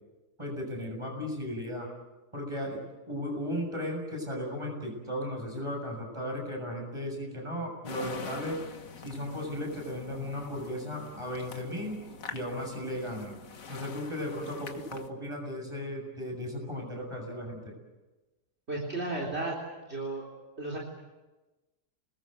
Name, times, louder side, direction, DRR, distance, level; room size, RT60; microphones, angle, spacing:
voice 1, 0.4-1.9 2.3-8.6 9.0-12.0 12.3-13.4 13.7-17.7, left 1 dB, 20° right, 1 dB, 7.4 m, -36 dB
sound 1, 7.8-15.1, left 5 dB, 60° left, 1.9 m, -45 dB
voice 2, 18.7-19.6 19.9-20.2 20.6-20.8, right 2 dB, 40° right, -1 dB, 4.1 m, -33 dB
28.5 x 20.5 x 8.0 m, 1.1 s
omnidirectional pair, 1.6 m